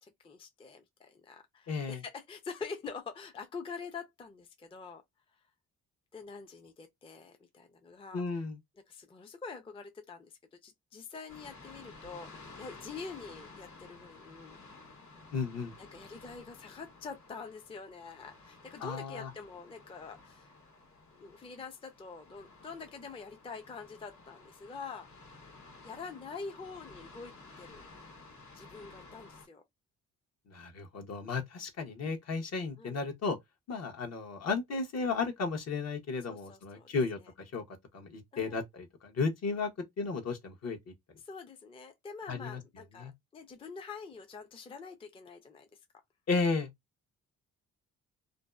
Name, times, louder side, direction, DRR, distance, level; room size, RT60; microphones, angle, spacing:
voice 1, 0.0-5.0 6.1-8.5 8.9-14.6 15.9-20.5 21.1-25.1 25.8-27.9 28.5-29.6 32.8-33.0 36.3-36.9 38.3-38.6 41.2-45.7, left 5 dB, 20° left, 0.4 m, -46 dB
voice 2, 1.7-2.0 8.1-8.6 15.3-15.7 18.8-19.3 30.5-33.4 33.7-37.2 37.5-39.7 40.0-40.9 42.3-42.6 43.0-43.1 46.3-46.7, left 4 dB, 60° left, 0.8 m, -34 dB
sound 1, 11.3-29.5, left 3 dB, 75° left, 1.2 m, -54 dB
2.6 x 2.3 x 2.2 m
cardioid pair, 90°, 30 cm